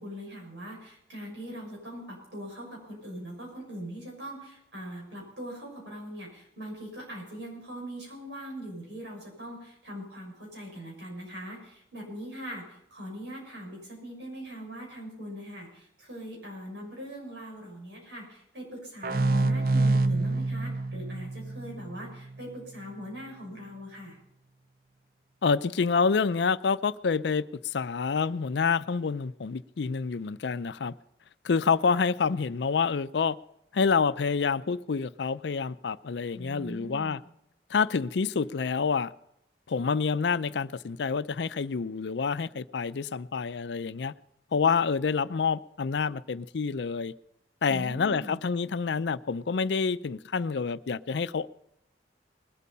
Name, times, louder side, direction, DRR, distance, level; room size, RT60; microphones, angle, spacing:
voice 1, 0.0-24.2 36.3-37.2 47.7-48.4, equal, 80° right, 6.5 m, -41 dB
sound 1, 19.0-22.5, right 2 dB, 50° right, 0.4 m, -27 dB
voice 2, 25.4-30.9 31.4-33.4 33.7-37.2 37.7-39.1 39.7-44.1 44.5-47.1 47.6-51.5, left 5 dB, 80° left, 0.5 m, -27 dB
20.5 x 8.4 x 5.4 m
head